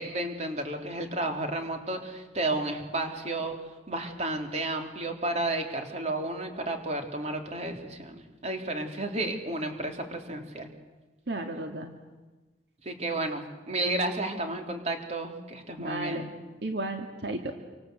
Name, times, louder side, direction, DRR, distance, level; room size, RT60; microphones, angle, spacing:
voice 1, 0.0-3.6 3.9-10.7 12.8-16.3, right 2 dB, 40° right, 4 dB, 3.6 m, -32 dB
voice 2, 11.3-11.9 15.8-16.3 16.6-17.5, right 2 dB, 70° right, 4 dB, 2.2 m, -33 dB
27.5 x 26.0 x 8.1 m, 1.2 s
head